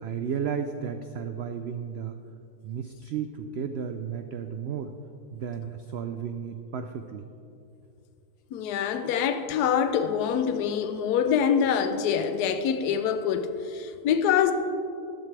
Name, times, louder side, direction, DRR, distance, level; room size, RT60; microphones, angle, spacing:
voice 1, 0.0-2.2 2.6-4.9 5.3-7.3, right 7 dB, 90° right, 0.5 m, -33 dB
voice 2, 8.5-14.5, left 8 dB, 85° left, 1.2 m, -25 dB
13.5 x 12.5 x 3.3 m
omnidirectional pair, 1.7 m